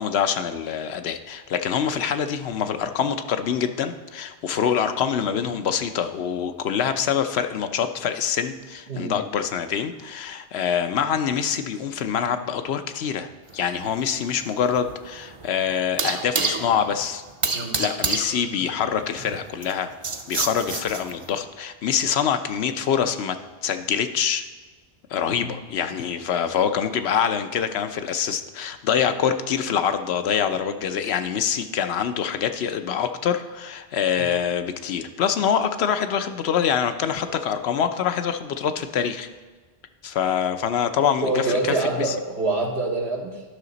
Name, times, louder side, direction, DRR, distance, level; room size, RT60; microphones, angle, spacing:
voice 1, 0.0-17.2 17.8-19.9 20.3-23.4 23.6-24.4 25.1-39.3 40.0-42.1, left 8 dB, 85° left, 9 dB, 0.9 m, -25 dB
sound 1, 13.5-21.4, right 4 dB, 40° right, 0.5 m, -30 dB
voice 2, 41.2-43.4, right 2 dB, 85° right, 0 dB, 1.4 m, -26 dB
11.5 x 5.7 x 4.0 m, 1.3 s
omnidirectional pair, 1.1 m